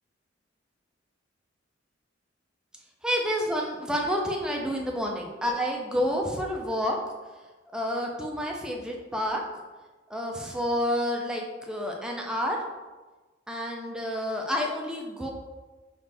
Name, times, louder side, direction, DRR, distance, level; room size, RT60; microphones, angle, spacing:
voice 1, 3.0-7.0 7.7-9.4 10.1-12.6 13.5-15.3, equal, 5° right, 0 dB, 0.5 m, -29 dB
4.2 x 3.2 x 3.3 m, 1.2 s
head